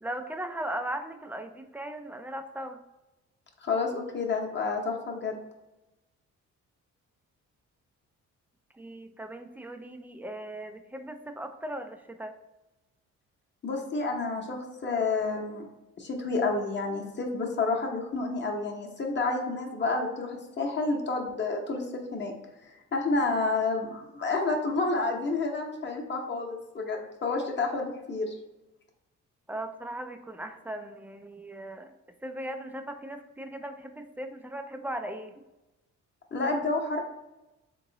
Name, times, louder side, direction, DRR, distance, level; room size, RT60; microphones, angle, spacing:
voice 1, 0.0-2.8 8.7-12.4 29.5-31.9 32.2-35.4, right 1 dB, 5° right, 7 dB, 0.3 m, -38 dB
voice 2, 3.6-5.4 13.6-15.7 16.0-22.3 22.9-28.3 36.3-37.0, left 3 dB, 35° left, 1 dB, 0.8 m, -29 dB
3.6 x 3.0 x 3.8 m, 1.0 s
cardioid pair, 90°, 30 cm